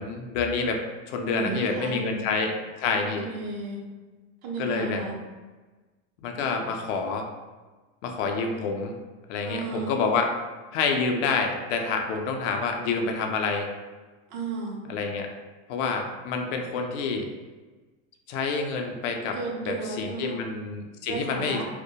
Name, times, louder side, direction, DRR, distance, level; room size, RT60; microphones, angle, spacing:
voice 1, 0.0-2.5 2.8-3.3 4.6-5.0 6.2-7.3 8.0-9.0 9.3-10.3 10.7-13.7 14.9-15.3 15.7-17.3 18.3-19.4 19.6-21.6, left 4 dB, 70° left, 3 dB, 0.5 m, -28 dB
voice 2, 1.3-2.3 3.0-3.8 4.4-5.2 9.4-10.0 14.3-14.8 19.3-20.4 21.1-21.7, right 3 dB, 60° right, -1 dB, 0.7 m, -33 dB
2.1 x 2.1 x 2.7 m, 1.3 s
supercardioid pair, 125°, 37 cm